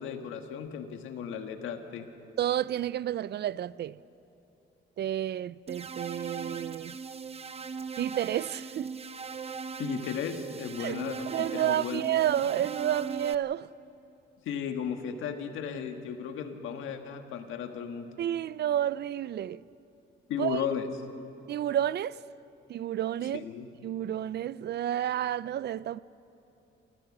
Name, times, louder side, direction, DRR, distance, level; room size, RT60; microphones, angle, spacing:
voice 1, 0.0-2.1 9.8-12.0 14.4-18.1 20.3-20.9 23.3-23.7, left 8 dB, 85° left, 1.6 m, -35 dB
voice 2, 2.4-4.0 5.0-7.0 8.0-8.9 10.8-11.0 11.3-13.7 18.2-19.7 20.4-20.6 21.5-22.2 22.7-23.5 23.8-26.0, right 11 dB, 55° right, 0.5 m, -30 dB
sound 1, 5.7-13.4, right 5 dB, 30° right, 0.8 m, -39 dB
28.0 x 15.0 x 7.4 m
cardioid pair, 90°, 20 cm